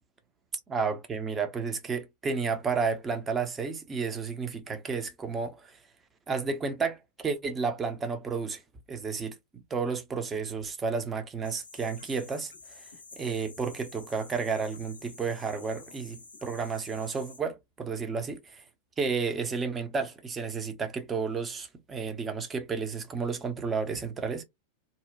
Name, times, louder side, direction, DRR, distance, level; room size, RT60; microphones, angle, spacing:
voice 1, 0.7-5.8 6.3-8.6 8.9-12.9 13.2-18.6 19.0-24.4, right 5 dB, 20° right, 0.5 m, -32 dB
sound 1, 11.4-17.4, left 4 dB, 75° left, 0.6 m, -50 dB
2.6 x 2.1 x 2.4 m
figure-of-eight pair, 90°, 0 cm